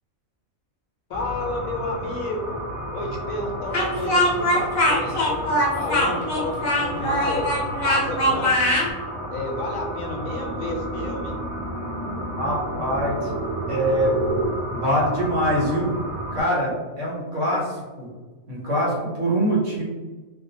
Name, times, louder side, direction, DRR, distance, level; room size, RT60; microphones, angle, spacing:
voice 1, 1.1-2.6 2.9-7.4 7.8-8.8 9.3-11.3, left 2 dB, 80° left, 1 dB, 1.0 m, -31 dB
sound 1, 1.1-16.4, equal, 25° right, 0.6 m, -33 dB
Speech, 3.7-8.9, left 1 dB, 55° left, 0.8 m, -21 dB
sound 2, 5.6-14.5, right 3 dB, 80° right, 1.1 m, -34 dB
voice 2, 12.3-13.3 13.7-14.2 14.7-15.9 16.3-18.1 18.5-19.8, equal, 65° right, -5 dB, 1.2 m, -24 dB
2.5 x 2.4 x 2.6 m, 1.3 s
omnidirectional pair, 1.4 m